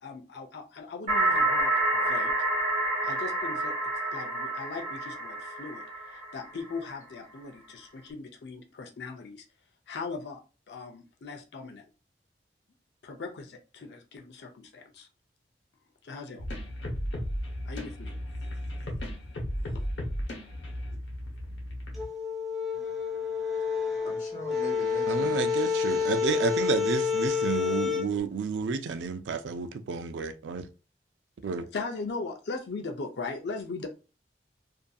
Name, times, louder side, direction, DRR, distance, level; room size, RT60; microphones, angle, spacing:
voice 1, 0.0-2.3 3.0-3.8 4.1-9.5 9.9-10.4 10.7-11.9 13.0-15.1 16.0-16.5 17.6-18.1 19.6-19.8 31.7-33.9, left 4 dB, 70° left, 0.4 m, -39 dB
sound 1, 1.1-6.8, right 2 dB, 35° right, 1.0 m, -28 dB
sound 2, 16.4-22.0, equal, 85° left, 0.8 m, -35 dB
sound 3, 21.9-28.1, left 6 dB, ahead, 0.6 m, -29 dB
voice 2, 24.0-25.3 26.0-26.4, right 1 dB, 45° left, 1.2 m, -42 dB
voice 3, 25.1-30.7 31.4-31.6, right 5 dB, 85° right, 0.4 m, -31 dB
2.5 x 2.5 x 2.3 m
head